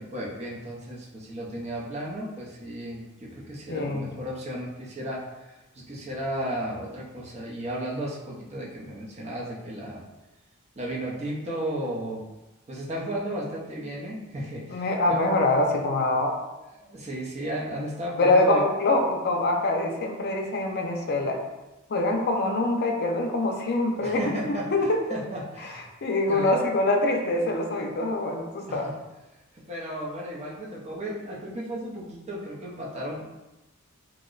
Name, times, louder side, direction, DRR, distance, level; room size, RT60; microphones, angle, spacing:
voice 1, 0.0-10.0 10.8-12.2 12.7-15.2 16.7-18.6 24.0-24.7 25.1-25.9 26.3-26.5 28.7-28.9 29.5-33.3, right 1 dB, 30° right, -4 dB, 0.7 m, -34 dB
voice 2, 3.7-4.1 14.7-16.3 18.2-21.4 21.9-25.2 25.6-28.9, left 2 dB, 50° left, 2 dB, 0.5 m, -24 dB
3.0 x 2.2 x 3.8 m, 1.0 s
head